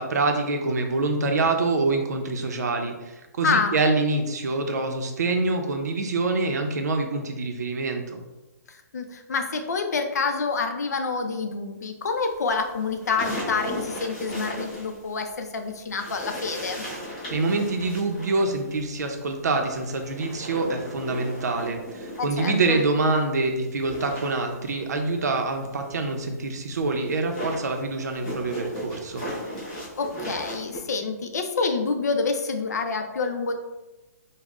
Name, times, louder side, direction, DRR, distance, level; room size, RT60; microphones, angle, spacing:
voice 1, 0.0-8.2 17.3-29.2, right 3 dB, 75° right, 4 dB, 0.6 m, -26 dB
voice 2, 3.4-3.7 8.7-16.9 22.2-22.8 30.0-33.5, left 4 dB, 75° left, 5 dB, 0.5 m, -27 dB
sound 1, 12.3-15.5 15.9-23.2 23.5-30.8, equal, 25° left, 1.0 m, -37 dB
5.2 x 2.1 x 2.4 m, 1.1 s
hypercardioid pair, 175°, 9 cm